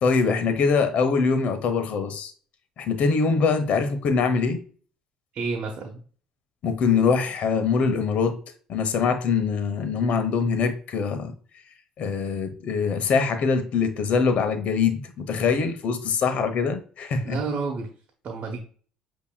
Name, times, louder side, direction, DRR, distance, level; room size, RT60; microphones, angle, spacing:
voice 1, 0.0-2.3 2.8-4.6 6.6-8.4 8.7-11.3 12.0-17.4, left 5 dB, 60° left, 0.9 m, -23 dB
voice 2, 5.3-6.0 17.2-17.9 18.2-18.6, right 4 dB, 55° right, 1.0 m, -30 dB
8.3 x 2.9 x 2.2 m
hypercardioid pair, 65°, 3 cm